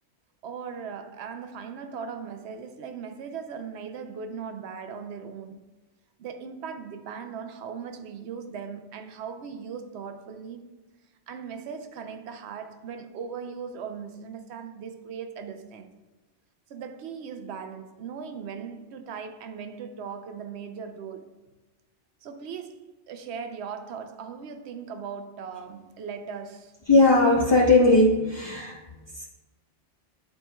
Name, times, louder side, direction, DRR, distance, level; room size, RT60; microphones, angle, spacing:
voice 1, 0.4-5.6 6.2-10.7 11.3-15.9 16.7-21.4 22.2-26.7, right 6 dB, 65° right, 0.8 m, -38 dB
voice 2, 26.9-28.8 29.1-29.3, left 2 dB, 35° left, 0.4 m, -19 dB
11.0 x 4.3 x 2.3 m
omnidirectional pair, 1.2 m